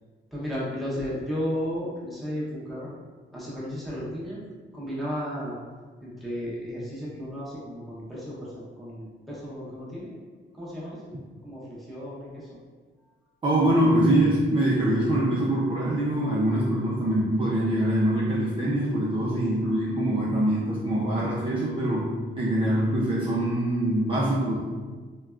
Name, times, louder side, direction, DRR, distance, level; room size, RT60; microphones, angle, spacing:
voice 1, 0.3-2.9 3.3-4.4 4.7-5.6 6.0-10.1 10.5-11.0 11.4-12.6 19.3-19.7, equal, ahead, -9 dB, 0.8 m, -34 dB
voice 2, 13.4-22.1 22.4-24.6, right 1 dB, 25° right, -6 dB, 0.4 m, -24 dB
3.3 x 2.2 x 2.3 m, 1.5 s
cardioid pair, 135°, 21 cm